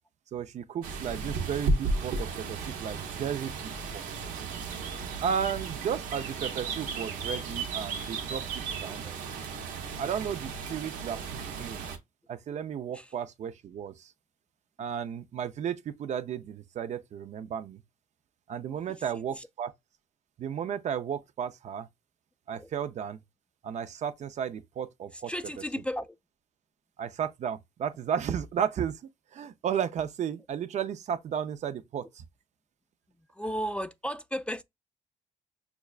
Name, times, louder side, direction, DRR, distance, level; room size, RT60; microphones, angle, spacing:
voice 1, 0.3-4.0 5.2-8.4 8.8-9.1 10.0-11.8 12.3-14.1 14.8-17.8 18.5-19.7 20.4-21.9 22.5-23.2 23.6-25.3 27.0-29.0 29.3-32.2, right 8 dB, 60° right, 0.5 m, -34 dB
sound 1, 0.8-12.0, right 4 dB, 85° right, 0.8 m, -34 dB
voice 2, 25.3-26.2 33.3-34.6, equal, 10° left, 0.3 m, -34 dB
5.9 x 2.2 x 2.3 m
cardioid pair, 80°, 14 cm